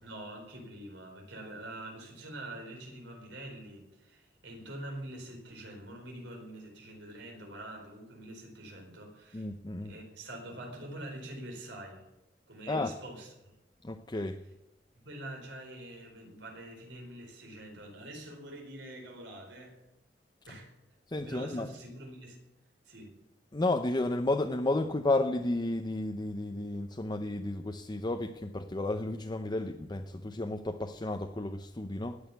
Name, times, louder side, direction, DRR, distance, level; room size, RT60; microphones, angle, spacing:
voice 1, 0.0-9.5 9.8-12.1 12.5-13.5 14.9-19.8 20.5-20.7 21.2-22.4 22.8-23.2, right 1 dB, 80° right, 1 dB, 4.5 m, -45 dB
voice 2, 9.3-9.9 12.7-13.0 13.8-14.4 21.1-21.7 23.5-32.2, left 2 dB, 25° left, 6 dB, 0.7 m, -32 dB
18.0 x 6.4 x 9.4 m, 0.92 s
head